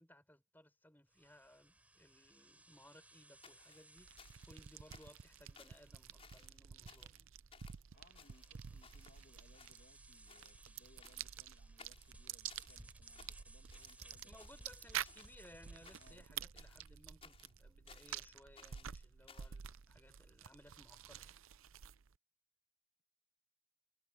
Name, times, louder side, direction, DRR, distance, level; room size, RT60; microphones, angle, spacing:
voice 1, 0.0-7.3 14.2-21.4, left 1 dB, 10° left, 4.1 m, -62 dB
sound 1, 1.1-16.5, right 1 dB, 5° right, 4.8 m, -63 dB
sound 2, 3.4-4.6 4.9-5.2 5.5-5.8 6.2-6.6 6.9-7.2 7.5-7.8 8.1-9.2 9.5-10.0 10.3-10.6 11.0-11.4 11.8-12.8 13.1-14.1 14.4-15.4 15.8-16.2 16.5-18.2 18.5-19.6, left 5 dB, 30° left, 5.9 m, -62 dB
sound 3, 4.0-22.2, right 9 dB, 75° right, 0.6 m, -50 dB
voice 2, 7.7-14.4 16.0-16.2, left 1 dB, 45° left, 2.2 m, -69 dB
head